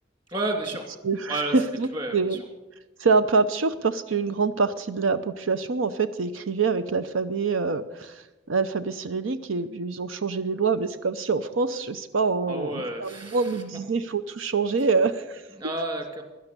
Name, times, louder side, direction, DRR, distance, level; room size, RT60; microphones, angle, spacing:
voice 1, 0.3-0.8 1.3-1.5 1.9-2.4 12.5-13.5 15.6-16.2, right 2 dB, 25° right, 4 dB, 2.6 m, -30 dB
voice 2, 1.0-2.4 3.0-15.5, right 4 dB, 90° right, 11 dB, 0.6 m, -25 dB
16.5 x 11.5 x 6.7 m, 1.1 s
head